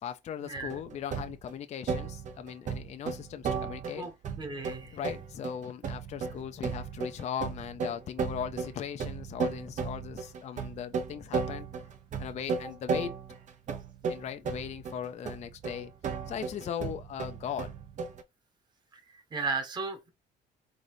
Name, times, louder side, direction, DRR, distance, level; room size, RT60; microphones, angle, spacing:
voice 1, 0.0-4.1 4.9-11.7 12.2-13.2 14.0-15.9 16.3-17.7, left 8 dB, 40° left, 0.5 m, -38 dB
sound 1, 0.5-1.5 1.9-18.2, right 5 dB, 45° right, 0.8 m, -35 dB
voice 2, 4.4-5.0 18.9-19.0 19.3-20.1, right 4 dB, 25° right, 1.3 m, -34 dB
4.0 x 3.7 x 3.3 m
cardioid pair, 110°, 17 cm